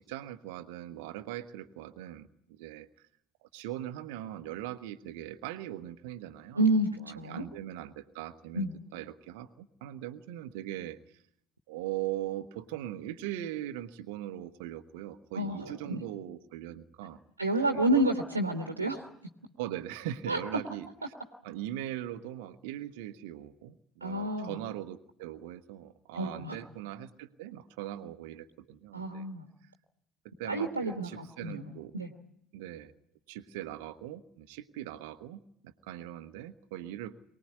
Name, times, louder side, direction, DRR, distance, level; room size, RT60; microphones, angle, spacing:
voice 1, 0.0-2.9 3.4-6.7 7.0-11.2 11.7-17.2 17.7-17.9 19.6-21.1 21.4-29.3 30.4-31.9 32.5-32.9 33.3-37.2, right 13 dB, 65° right, 12 dB, 1.2 m, -40 dB
voice 2, 6.5-7.4 8.5-8.7 15.3-16.0 17.4-19.0 20.3-20.4 24.0-24.5 26.1-26.6 28.9-29.4 30.4-32.1, right 1 dB, 85° right, 4 dB, 1.4 m, -29 dB
23.5 x 19.0 x 9.5 m, 0.72 s
figure-of-eight pair, 60°, 0 cm